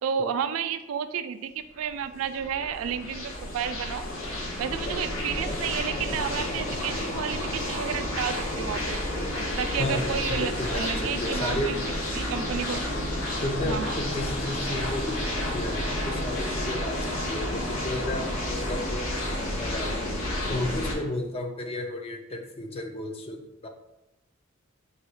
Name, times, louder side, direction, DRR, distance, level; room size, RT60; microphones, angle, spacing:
voice 1, 0.0-4.1 4.6-9.0 9.6-11.8 12.1-12.9 13.6-14.0, right 7 dB, 85° right, 9 dB, 0.3 m, -31 dB
sound 1, 1.8-20.9, left 1 dB, 80° left, 0.9 m, -30 dB
voice 2, 9.8-11.7 12.7-12.8 13.4-19.1 19.6-19.9 20.5-23.7, left 1 dB, 30° left, 4 dB, 0.4 m, -33 dB
3.9 x 2.3 x 4.4 m, 0.93 s
head